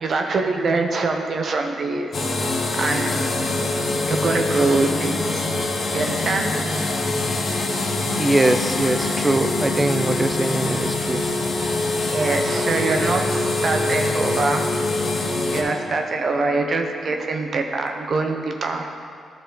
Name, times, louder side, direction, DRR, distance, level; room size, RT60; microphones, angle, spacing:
voice 1, 0.0-2.3 2.8-3.2 4.1-5.5 5.9-6.5 12.1-14.6 15.5-18.9, right 3 dB, 60° right, 4 dB, 0.7 m, -24 dB
sound 1, 2.1-15.6, left 2 dB, 60° left, 1.0 m, -24 dB
voice 2, 8.2-11.2, right 2 dB, 20° right, 9 dB, 0.5 m, -22 dB
11.5 x 4.3 x 3.9 m, 2.4 s
supercardioid pair, 55°, 0 cm